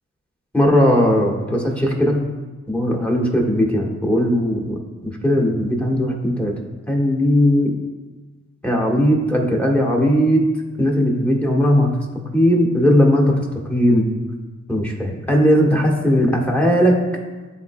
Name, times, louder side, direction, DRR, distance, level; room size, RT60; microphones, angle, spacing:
voice 1, 0.5-2.2 2.7-6.5 6.9-7.7 8.6-10.4 10.8-11.9 12.3-13.4 13.7-14.0 14.7-17.0, equal, 5° left, -1 dB, 1.4 m, -18 dB
11.0 x 4.0 x 2.2 m, 1.3 s
cardioid pair, 60°, 30 cm